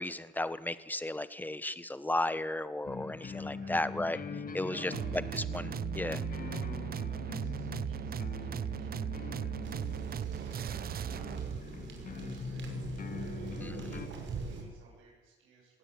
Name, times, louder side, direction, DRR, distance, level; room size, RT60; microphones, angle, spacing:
voice 1, 0.0-4.2 4.5-4.9 5.3-6.2, left 1 dB, 10° left, 14 dB, 1.4 m, -34 dB
sound 1, 2.8-14.1, left 5 dB, 45° left, 2.2 m, -42 dB
voice 2, 3.2-3.9 4.4-5.2 6.3-15.8, right 4 dB, 90° right, -5 dB, 7.8 m, -57 dB
sound 2, 4.9-11.6, right 10 dB, 50° right, 0.7 m, -37 dB
sound 3, 9.6-14.6, right 5 dB, 65° right, 5.8 m, -43 dB
20.5 x 17.0 x 9.8 m, 1.2 s
cardioid pair, 90°, 20 cm